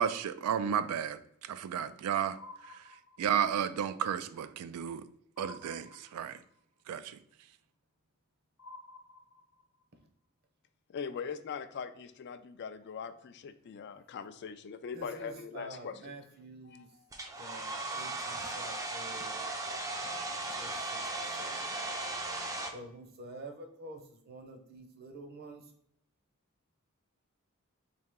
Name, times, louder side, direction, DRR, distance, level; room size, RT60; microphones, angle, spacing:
voice 1, 0.0-2.4 2.6-2.8 3.2-5.1 5.4-6.4 6.9-7.2, right 8 dB, 85° right, 0.3 m, -33 dB
sound 1, 2.3-3.6 5.4-6.6 8.6-9.8, left 2 dB, 80° left, 0.7 m, -52 dB
voice 2, 10.9-16.0 16.7-16.8, left 6 dB, 50° left, 0.3 m, -41 dB
voice 3, 14.9-17.0 17.4-19.4 20.0-21.7 22.7-25.7, right 2 dB, 45° right, 0.7 m, -48 dB
Domestic sounds home sounds, 17.1-22.7, right 2 dB, 15° right, 0.4 m, -37 dB
4.2 x 2.8 x 3.6 m
head